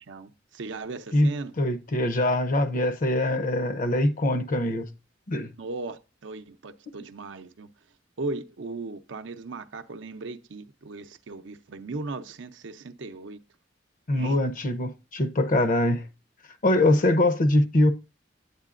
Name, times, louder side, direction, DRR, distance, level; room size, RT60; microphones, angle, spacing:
voice 1, 0.0-1.5 5.6-7.7 8.2-13.4 14.1-14.4 16.8-17.0, right 3 dB, 85° right, 0.6 m, -37 dB
voice 2, 1.6-4.9 5.3-5.5 14.1-16.1 16.6-17.9, left 1 dB, 45° left, 0.6 m, -23 dB
9.0 x 8.2 x 2.5 m
head